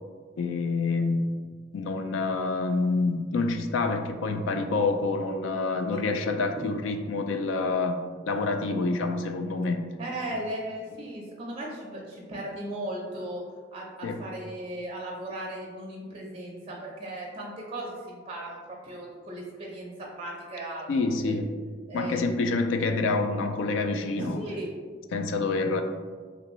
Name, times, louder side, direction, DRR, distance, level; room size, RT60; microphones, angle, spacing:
voice 1, 0.4-1.4 1.7-9.9 14.0-14.3 20.9-21.5 21.9-24.4 25.1-25.8, left 3 dB, 80° left, 6 dB, 0.3 m, -27 dB
voice 2, 10.0-13.4 13.7-20.9 21.2-21.4 21.9-22.3 24.2-24.7, right 1 dB, 30° right, -3 dB, 0.4 m, -37 dB
2.9 x 2.6 x 3.0 m, 1.5 s
head